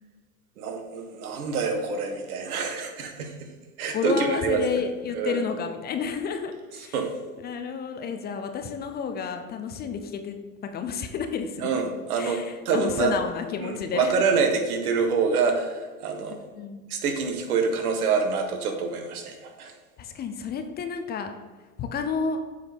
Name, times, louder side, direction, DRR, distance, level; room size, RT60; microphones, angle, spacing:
voice 1, 0.6-3.5 3.8-4.6 5.1-5.4 6.9-7.1 11.6-12.4 12.6-13.1 13.6-16.4 16.9-19.7, right 5 dB, 80° right, 5 dB, 1.4 m, -26 dB
voice 2, 3.9-6.9 7.4-10.4 10.6-11.8 12.2-14.2 16.3-16.8 20.0-21.3 21.8-22.4, left 6 dB, 20° left, 7 dB, 0.5 m, -31 dB
7.4 x 4.2 x 5.1 m, 1.4 s
hypercardioid pair, 115°, 44 cm